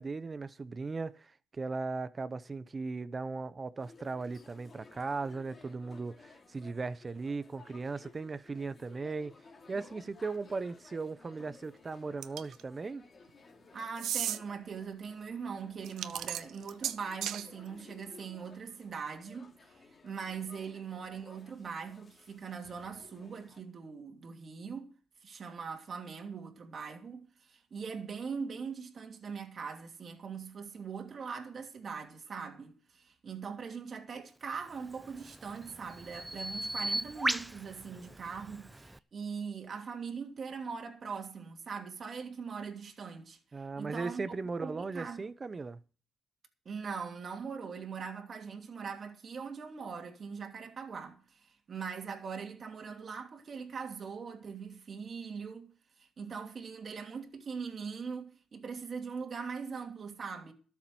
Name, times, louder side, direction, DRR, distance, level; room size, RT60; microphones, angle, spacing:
voice 1, 0.0-9.3 9.7-13.0 43.5-45.8, right 4 dB, 30° right, 0.9 m, -38 dB
sound 1, 3.8-23.6, left 4 dB, 35° left, 3.4 m, -57 dB
sound 2, 12.2-12.6 14.0-14.4 15.8-17.5, right 11 dB, 75° right, 0.9 m, -35 dB
voice 2, 13.7-24.9 25.2-43.4 43.8-44.3 44.6-45.3 46.6-55.7 56.0-60.5, right 5 dB, 45° right, 2.8 m, -41 dB
Bird vocalization bird call bird song, 34.8-39.0, right 1 dB, 10° right, 0.7 m, -37 dB
13.0 x 7.3 x 7.7 m
cardioid pair, 80°, 0 cm